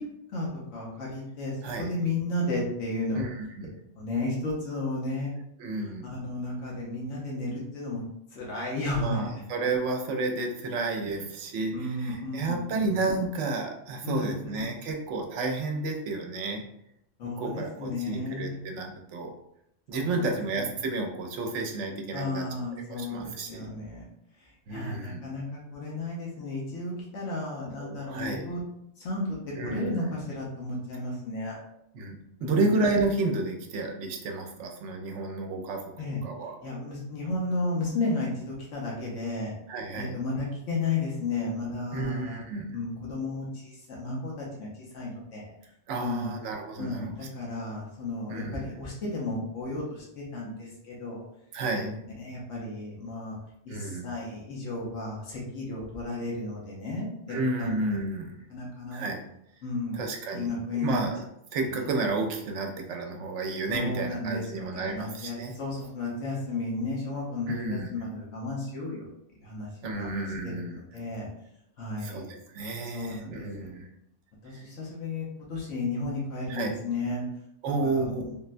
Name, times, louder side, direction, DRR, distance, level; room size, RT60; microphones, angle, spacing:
voice 1, 0.3-3.3 3.9-5.3 6.0-8.0 8.3-9.2 11.7-12.9 14.0-14.7 17.2-18.6 19.9-20.3 20.5-20.7 22.1-24.1 24.7-28.6 29.0-29.4 29.6-31.5 32.4-32.7 36.0-36.3 36.6-39.6 40.0-42.4 42.7-45.5 45.9-46.3 46.8-51.2 51.7-51.9 52.2-53.4 53.7-57.8 58.5-59.1 59.6-60.0 60.3-61.0 61.7-61.9 63.7-69.1 69.4-70.1 70.4-70.5 70.9-71.3 71.8-72.3 72.9-73.7 74.4-77.2 77.7-78.3, left 2 dB, 85° left, -4 dB, 1.1 m, -33 dB
voice 2, 1.6-1.9 3.2-3.7 5.6-6.1 9.0-16.6 17.2-19.3 19.9-22.5 22.7-23.7 24.7-25.2 27.8-28.4 29.6-30.0 31.9-35.8 36.1-36.6 39.7-40.2 41.9-42.8 45.9-47.1 48.3-48.7 51.5-51.9 53.7-54.1 57.3-58.4 58.9-59.2 59.9-61.2 61.5-65.5 67.5-67.9 69.8-70.8 72.0-73.9 74.5-74.6 76.5-76.8 77.6-78.4, right 3 dB, 80° right, 3 dB, 0.9 m, -31 dB
3.7 x 2.1 x 2.4 m, 0.77 s
omnidirectional pair, 1.2 m